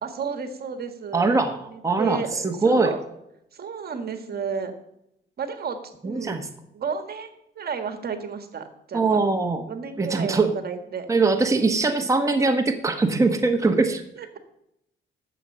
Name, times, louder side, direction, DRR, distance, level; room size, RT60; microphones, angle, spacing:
voice 1, 0.0-3.0 3.5-4.7 5.4-6.5 6.7-7.3 7.5-9.2 9.7-11.1 11.6-11.8 14.2-14.4, right 6 dB, 50° right, 8 dB, 1.7 m, -32 dB
voice 2, 1.1-2.9 6.0-6.4 8.9-9.7 10.0-10.5 11.1-14.0, right 3 dB, 15° right, 5 dB, 1.2 m, -22 dB
11.5 x 7.7 x 5.6 m, 0.80 s
cardioid pair, 90°, 20 cm